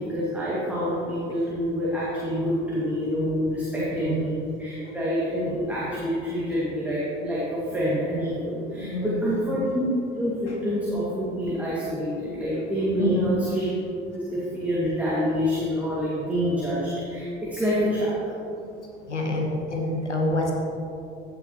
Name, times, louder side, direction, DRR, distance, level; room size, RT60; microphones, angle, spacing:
voice 1, 0.0-9.8 10.1-13.7 14.1-18.2, equal, 5° right, -9 dB, 2.2 m, -27 dB
voice 2, 3.8-4.2 4.8-4.9 8.8-9.4 10.5-10.6 13.0-13.4 19.0-20.5, left 1 dB, 90° left, 1 dB, 1.2 m, -27 dB
15.5 x 6.1 x 3.1 m, 2.7 s
figure-of-eight pair, 65°, 34 cm